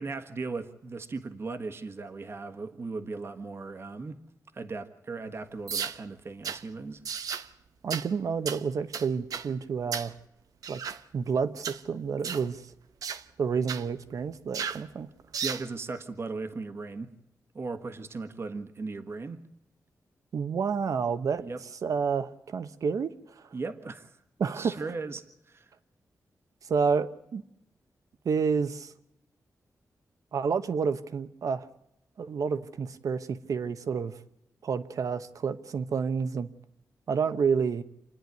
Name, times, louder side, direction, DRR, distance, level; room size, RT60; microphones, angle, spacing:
voice 1, 0.0-4.2 4.5-7.0 15.4-17.2 17.5-19.4 21.4-21.6 23.5-24.2 24.5-25.7, right 3 dB, 45° right, 1.5 m, -37 dB
sound 1, 5.7-6.0 6.4-6.6 7.1-7.5 7.9-8.1 8.5-8.6 8.9-9.5 9.9-10.1 10.6-11.0 11.6-11.8 12.2-12.5 13.0-13.2 13.7-13.9 14.5-14.8 15.3-15.7, right 7 dB, 90° right, 0.9 m, -34 dB
voice 2, 7.8-10.1 10.7-10.8 11.1-12.6 13.4-15.1 20.3-21.4 21.8-23.1 24.4-24.8 26.7-27.4 28.2-28.9 30.3-31.7 32.2-34.1 34.6-36.5 37.1-37.8, right 6 dB, 70° right, 1.1 m, -29 dB
28.0 x 10.5 x 9.4 m
wide cardioid pair, 115°, 6 cm